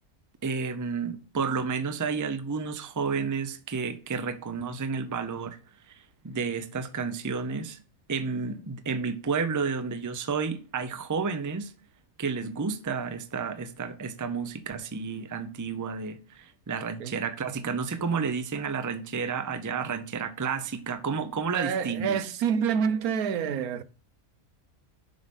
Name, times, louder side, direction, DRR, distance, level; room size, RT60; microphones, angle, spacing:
voice 1, 0.4-5.6 6.2-7.8 8.1-11.7 12.2-22.2, right 5 dB, 25° right, 0.4 m, -31 dB
voice 2, 21.2-23.8, right 7 dB, 85° right, 1.2 m, -28 dB
6.9 x 5.5 x 5.3 m
omnidirectional pair, 1.5 m